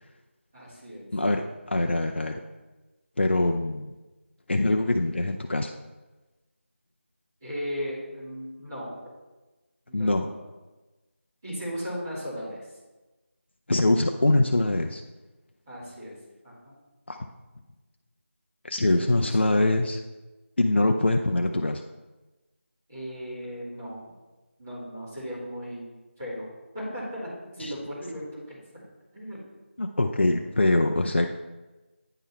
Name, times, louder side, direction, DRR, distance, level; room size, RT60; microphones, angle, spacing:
voice 1, 0.5-1.1 7.4-9.1 9.9-10.3 11.4-12.7 15.7-16.1 16.4-16.7 18.9-19.7 22.9-24.0 24.6-25.9 26.2-28.6 29.1-29.4, equal, 15° right, -11 dB, 2.0 m, -36 dB
voice 2, 1.1-2.4 3.2-3.9 4.5-5.7 9.9-10.3 13.7-15.0 17.1-17.3 18.6-20.0 20.6-21.8 27.6-27.7 29.8-31.3, left 2 dB, 55° left, 3 dB, 0.4 m, -23 dB
9.0 x 3.8 x 4.2 m, 1.1 s
figure-of-eight pair, 175°, 7 cm